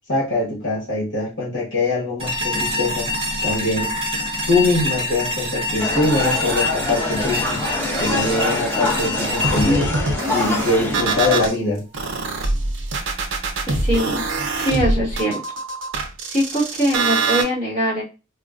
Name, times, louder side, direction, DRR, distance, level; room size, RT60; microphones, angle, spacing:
voice 1, 0.1-3.1 3.4-3.9 4.5-7.6 8.0-9.9 10.3-11.8, left 2 dB, 60° left, -4 dB, 1.4 m, -22 dB
sound 1, 2.2-11.2, left 1 dB, 25° right, 0.7 m, -26 dB
sound 2, 5.8-11.5, left 2 dB, 10° left, 0.7 m, -25 dB
sound 3, 9.4-11.5 11.9-17.4, right 3 dB, 65° right, 0.6 m, -23 dB
voice 2, 13.7-14.2 14.5-15.4 16.3-18.0, equal, 35° left, -8 dB, 1.6 m, -22 dB
3.6 x 2.2 x 2.4 m, 0.31 s
head